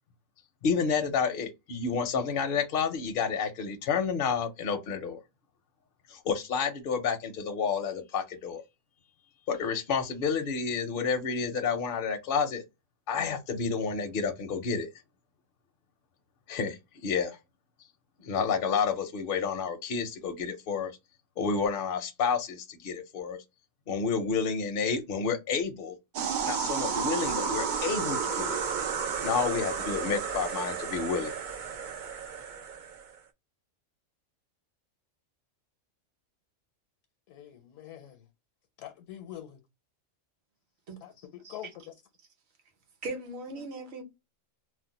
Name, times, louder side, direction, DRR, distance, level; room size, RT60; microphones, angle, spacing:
voice 1, 0.6-5.2 6.1-8.6 9.5-12.6 13.1-14.9 16.5-16.8 17.0-17.4 18.2-20.9 21.4-23.4 23.9-26.0 26.4-28.6 29.2-31.3, left 5 dB, 60° left, 0.6 m, -30 dB
sound 1, 26.1-33.1, right 6 dB, 85° right, 0.4 m, -32 dB
voice 2, 37.3-38.3 38.8-39.6 41.0-41.9 43.5-43.7, left 11 dB, 80° left, 0.9 m, -45 dB
voice 3, 43.0-44.0, right 2 dB, 60° right, 1.0 m, -38 dB
2.4 x 2.1 x 3.9 m
omnidirectional pair, 1.4 m